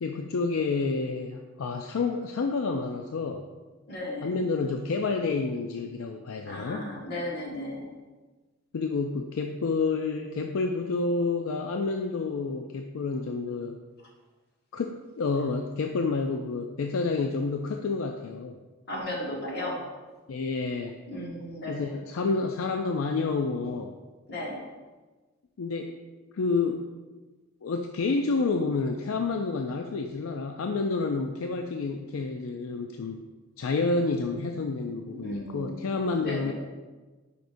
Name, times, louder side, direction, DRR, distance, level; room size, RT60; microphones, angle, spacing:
voice 1, 0.0-3.4 4.2-6.9 8.7-13.8 14.7-18.6 20.3-20.9 21.7-23.9 25.6-26.0 26.3-26.9 27.6-33.2 33.6-36.5, left 4 dB, 85° left, 4 dB, 0.4 m, -29 dB
voice 2, 3.9-4.4 6.4-7.9 18.9-19.9 21.1-21.9 24.3-24.7 35.1-35.8 36.2-36.5, left 1 dB, 50° left, -2 dB, 1.6 m, -35 dB
9.2 x 5.1 x 2.6 m, 1.3 s
head